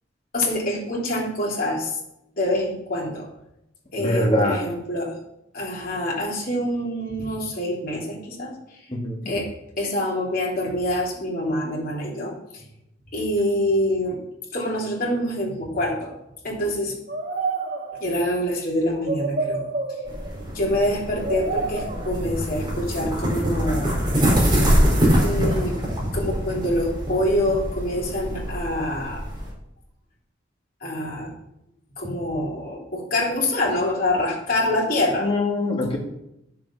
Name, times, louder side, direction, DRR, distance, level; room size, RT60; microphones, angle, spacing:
voice 1, 0.3-2.0 2.4-3.3 3.9-5.2 5.5-8.5 9.2-9.5 9.8-12.6 13.1-14.2 14.5-16.1 16.4-16.9 18.0-19.6 20.5-24.0 25.2-25.8 26.1-29.2 30.8-31.3 32.0-35.3, left 1 dB, 50° left, -3 dB, 3.1 m, -25 dB
voice 2, 4.0-4.6 8.9-9.2 35.2-36.0, left 1 dB, 30° left, -2 dB, 2.6 m, -23 dB
sound 1, 17.1-18.3 18.8-20.5 21.1-22.4 23.7-23.9, right 3 dB, 45° right, 1.5 m, -29 dB
sound 2, 20.1-29.5, equal, 25° right, 4.1 m, -24 dB
10.0 x 7.2 x 5.7 m, 0.83 s
head